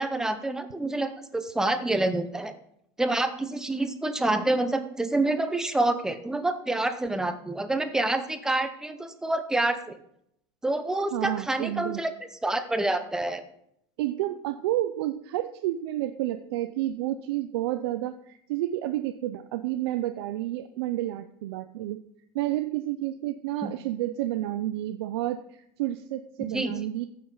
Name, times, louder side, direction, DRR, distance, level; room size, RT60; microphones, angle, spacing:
voice 1, 0.0-2.5 3.0-10.0 10.6-12.1 12.4-13.4 23.6-23.7 26.5-26.7, right 2 dB, 5° right, 9 dB, 0.6 m, -27 dB
voice 2, 11.1-12.0 14.0-22.0 22.3-27.1, right 14 dB, 85° right, 9 dB, 0.6 m, -30 dB
15.0 x 6.5 x 4.0 m, 0.73 s
supercardioid pair, 170°, 13 cm